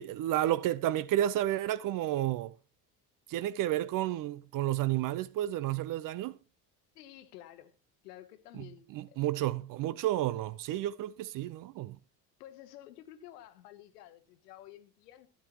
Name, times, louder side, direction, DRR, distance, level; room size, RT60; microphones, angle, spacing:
voice 1, 0.0-2.5 3.3-6.4 8.5-12.0, right 13 dB, 40° right, 0.6 m, -31 dB
voice 2, 6.9-7.7 8.0-9.2 12.4-15.3, left 13 dB, 75° left, 1.1 m, -51 dB
12.0 x 11.5 x 3.0 m
hypercardioid pair, 65°, 48 cm